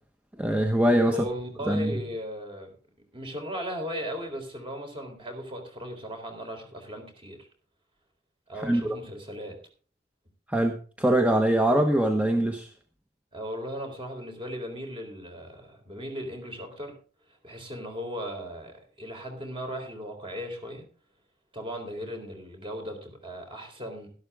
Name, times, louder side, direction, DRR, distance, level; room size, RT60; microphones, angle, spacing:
voice 1, 0.4-1.2 1.7-2.0 8.6-8.8 10.5-12.7, right 1 dB, 10° right, 4 dB, 1.0 m, -23 dB
voice 2, 1.1-2.7 3.1-7.5 8.5-9.6 13.3-17.0 17.4-20.9 21.5-24.1, equal, 30° right, 4 dB, 3.7 m, -37 dB
12.5 x 12.0 x 3.6 m, 0.38 s
head